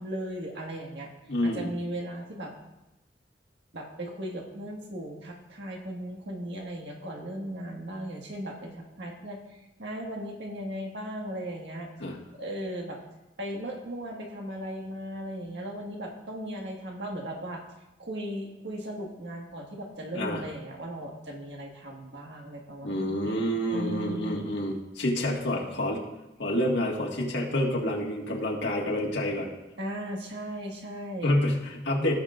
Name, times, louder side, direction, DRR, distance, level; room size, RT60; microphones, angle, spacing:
voice 1, 0.0-1.1 1.4-2.5 3.7-9.4 9.8-11.9 12.4-13.0 13.4-17.6 18.0-23.4 23.7-24.5 29.8-31.3, right 1 dB, 90° right, 0 dB, 1.7 m, -37 dB
voice 2, 1.3-1.7 12.0-12.2 20.1-20.4 22.8-26.0 26.4-29.5 31.2-32.1, left 1 dB, 90° left, -2 dB, 1.8 m, -28 dB
17.0 x 6.5 x 2.5 m, 0.96 s
head